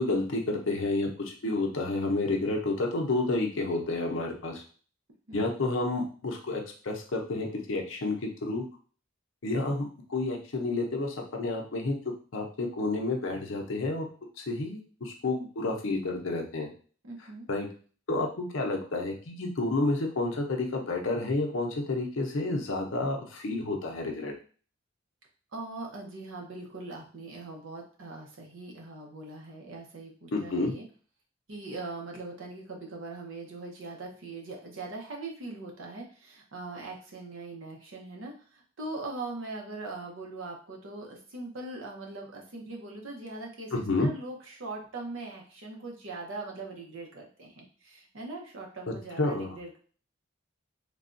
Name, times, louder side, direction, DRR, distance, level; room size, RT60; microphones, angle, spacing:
voice 1, 0.0-4.6 5.3-8.6 9.4-9.8 10.1-12.0 12.3-14.0 14.4-16.7 17.5-17.7 18.1-24.3 30.3-30.7 43.7-44.1 48.9-49.5, left 2 dB, 70° left, 2 dB, 0.6 m, -30 dB
voice 2, 17.0-17.5 25.5-30.8 31.5-49.8, right 3 dB, 75° right, 0 dB, 0.8 m, -41 dB
3.3 x 2.3 x 2.5 m, 0.41 s
head